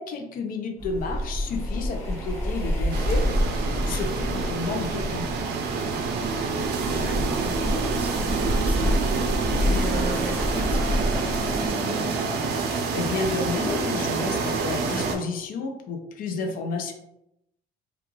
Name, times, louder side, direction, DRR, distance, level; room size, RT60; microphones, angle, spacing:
voice 1, 0.0-5.3 12.7-16.9, left 3 dB, 55° left, 4 dB, 0.5 m, -31 dB
sound 1, 0.8-11.7, equal, 40° left, 1.2 m, -28 dB
sound 2, 2.9-15.2, right 4 dB, 75° right, 0.5 m, -27 dB
voice 2, 7.0-9.0 9.6-12.3, right 1 dB, 10° right, 1 dB, 0.4 m, -36 dB
2.4 x 2.3 x 3.0 m, 0.84 s
cardioid pair, 110°, 17 cm